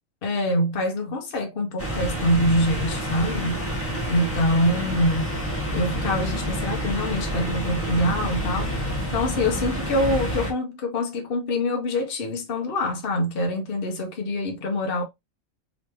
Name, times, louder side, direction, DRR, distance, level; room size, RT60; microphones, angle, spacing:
voice 1, 0.2-3.6 4.1-5.3 5.7-8.7 9.1-15.0, left 1 dB, 50° left, 0.8 m, -25 dB
sound 1, 1.8-10.5, equal, 10° left, 1.2 m, -28 dB
3.2 x 3.0 x 2.9 m
omnidirectional pair, 1.4 m